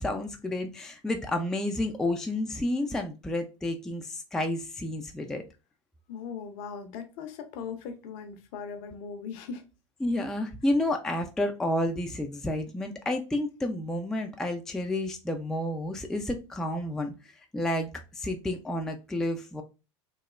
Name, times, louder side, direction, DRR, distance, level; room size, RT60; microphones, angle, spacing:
voice 1, 0.0-5.4 10.0-17.1 17.5-19.6, left 1 dB, 5° left, 0.3 m, -30 dB
voice 2, 6.1-9.6, left 6 dB, 55° left, 0.6 m, -39 dB
3.0 x 2.0 x 2.4 m
figure-of-eight pair, 80°, 16 cm